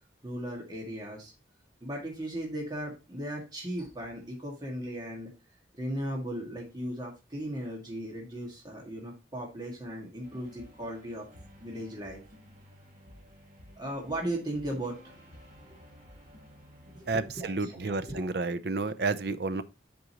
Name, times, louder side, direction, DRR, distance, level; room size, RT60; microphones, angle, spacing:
voice 1, 0.2-1.3 1.8-5.3 5.8-11.3 11.6-12.2 13.8-15.1 15.6-15.8 16.9-18.3, right 1 dB, 25° right, 1.8 m, -37 dB
sound 1, 10.2-17.2, equal, 40° right, 2.2 m, -53 dB
voice 2, 17.1-19.6, right 3 dB, 65° right, 0.6 m, -31 dB
7.8 x 5.2 x 2.9 m
head